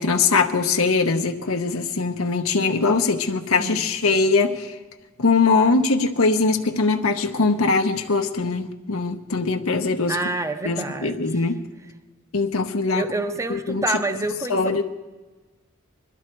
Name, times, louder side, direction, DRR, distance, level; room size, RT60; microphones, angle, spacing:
voice 1, 0.0-4.7 5.2-10.2 10.6-11.6 12.3-13.0 13.5-13.8 14.5-14.8, left 4 dB, 90° left, 5 dB, 0.9 m, -21 dB
voice 2, 10.1-11.2 12.9-14.8, right 2 dB, 15° right, 9 dB, 0.6 m, -27 dB
21.0 x 13.0 x 4.5 m, 1.2 s
head